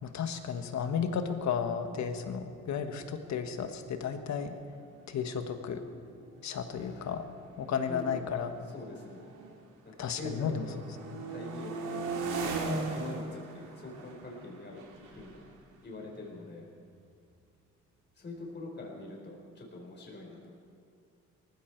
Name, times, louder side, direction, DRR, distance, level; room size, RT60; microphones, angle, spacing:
voice 1, 0.0-4.6 5.1-5.8 6.4-7.3 7.6-8.5 10.0-10.7, left 7 dB, 65° left, 7 dB, 1.5 m, -33 dB
sound 1, 4.4-4.5 4.7-5.1 5.8-9.7 10.1-16.7, right 3 dB, 85° right, 2.4 m, -40 dB
voice 2, 6.7-7.2 7.7-8.4 8.7-9.3 9.8-10.8 11.3-12.3 12.8-15.4 15.8-16.7 18.2-20.5, left 2 dB, 35° left, -1 dB, 4.0 m, -44 dB
18.5 x 15.0 x 4.6 m, 2.5 s
cardioid pair, 90°, 30 cm